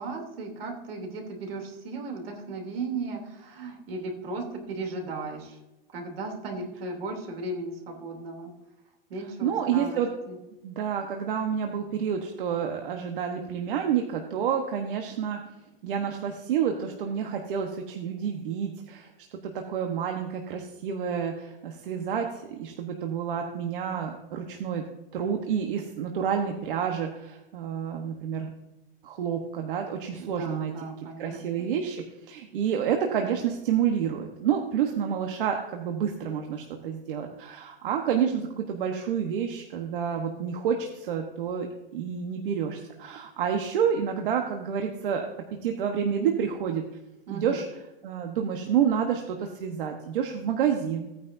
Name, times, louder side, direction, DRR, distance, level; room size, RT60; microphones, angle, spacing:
voice 1, 0.0-5.6 5.9-8.5 9.1-10.0 10.3-10.4 30.2-31.7 47.3-47.6, right 3 dB, 75° right, 2 dB, 3.1 m, -36 dB
voice 2, 9.4-10.1 10.6-15.4 15.8-19.1 19.4-24.8 25.1-28.5 29.0-30.7 31.2-41.7 41.9-45.3 45.6-46.8 47.3-47.7 48.0-51.1, right 8 dB, 60° right, 3 dB, 1.2 m, -29 dB
17.0 x 9.4 x 2.7 m, 0.98 s
supercardioid pair, 170°, 30 cm